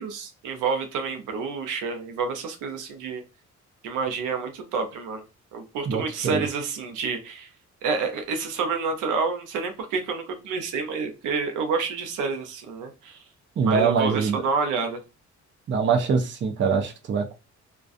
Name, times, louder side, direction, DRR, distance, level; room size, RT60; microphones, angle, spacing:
voice 1, 0.0-3.2 3.8-5.2 5.5-7.5 7.8-13.2 13.7-15.0, right 5 dB, 85° right, 5 dB, 0.6 m, -28 dB
voice 2, 5.9-6.5 13.6-14.4 15.7-17.3, right 5 dB, 40° right, 5 dB, 0.6 m, -23 dB
2.3 x 2.3 x 2.5 m, 0.28 s
cardioid pair, 90°, 30 cm